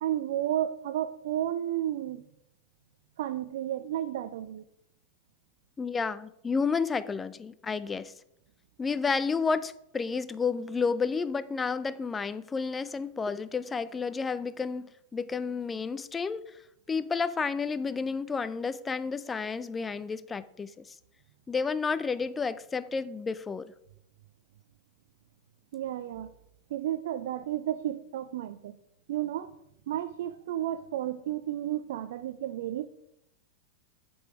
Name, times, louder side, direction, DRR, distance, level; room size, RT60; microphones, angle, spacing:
voice 1, 0.0-2.3 3.2-4.6 25.7-26.3 26.7-28.7 29.1-29.5 29.9-32.9, right 12 dB, 55° right, 0.5 m, -32 dB
voice 2, 5.8-8.1 8.8-16.4 16.9-20.9 21.5-23.7, left 5 dB, 15° left, 0.5 m, -31 dB
7.9 x 7.8 x 4.7 m
figure-of-eight pair, 90°, 0 cm